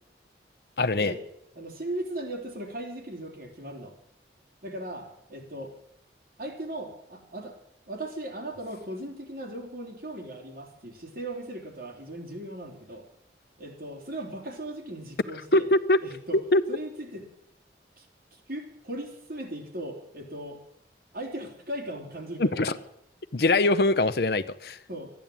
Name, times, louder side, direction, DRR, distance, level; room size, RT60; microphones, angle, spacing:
voice 1, 0.8-1.1 15.5-16.0 16.5-16.6 22.4-22.7 23.3-24.8, left 2 dB, 65° left, 14 dB, 0.7 m, -22 dB
voice 2, 1.6-3.9 4.6-5.7 6.4-7.6 7.9-13.1 13.6-15.7 16.0-16.4 16.7-17.2 18.0-18.1 18.5-20.6 21.1-22.8 24.9-25.1, right 1 dB, 55° right, 0 dB, 3.6 m, -38 dB
14.0 x 10.5 x 8.8 m, 0.74 s
head